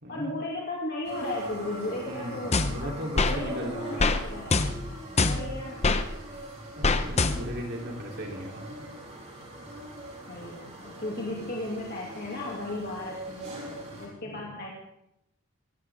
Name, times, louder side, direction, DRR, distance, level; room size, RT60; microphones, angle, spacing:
voice 1, 0.1-4.6 5.2-5.9 10.3-14.7, left 1 dB, 45° left, -3 dB, 2.6 m, -35 dB
sound 1, 1.0-14.1, right 1 dB, 30° right, 5.2 m, -42 dB
voice 2, 2.0-4.1 6.8-8.7, equal, 50° right, 0 dB, 3.5 m, -37 dB
sound 2, 2.5-3.4 4.0-4.2 4.5-6.0 6.8-7.7, left 3 dB, 30° left, 0.8 m, -25 dB
23.0 x 17.0 x 3.7 m, 0.84 s
head